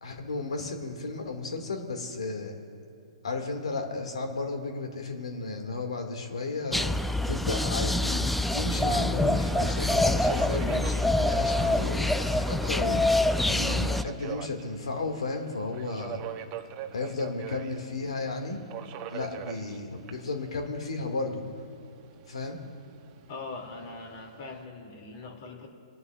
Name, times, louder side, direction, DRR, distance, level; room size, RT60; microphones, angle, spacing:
voice 1, 0.0-2.5 3.2-6.9 7.3-16.2 16.9-18.6 19.1-21.4 22.3-22.6, left 3 dB, 80° left, 4 dB, 2.0 m, -34 dB
Subway metro underground, 6.2-24.6, right 10 dB, 30° right, 0.8 m, -43 dB
sound 1, 6.7-14.0, left 1 dB, ahead, 0.3 m, -26 dB
voice 2, 23.3-25.7, left 3 dB, 45° left, 2 dB, 2.5 m, -41 dB
24.0 x 11.0 x 2.4 m, 2.8 s
hypercardioid pair, 130°, 3 cm